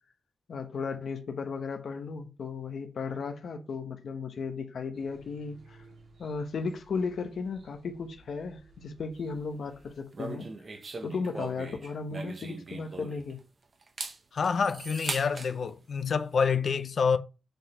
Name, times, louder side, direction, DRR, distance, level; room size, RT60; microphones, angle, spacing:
voice 1, 0.5-5.9 6.2-10.5 11.0-13.4, left 5 dB, 70° left, 1.1 m, -35 dB
sound 1, 4.9-10.0, right 3 dB, 70° right, 3.6 m, -58 dB
sound 2, 10.1-13.4 13.8-15.5, right 3 dB, 40° right, 1.1 m, -39 dB
voice 2, 14.3-17.2, left 5 dB, 55° left, 0.7 m, -27 dB
7.2 x 4.0 x 5.4 m
wide cardioid pair, 155°, 0 cm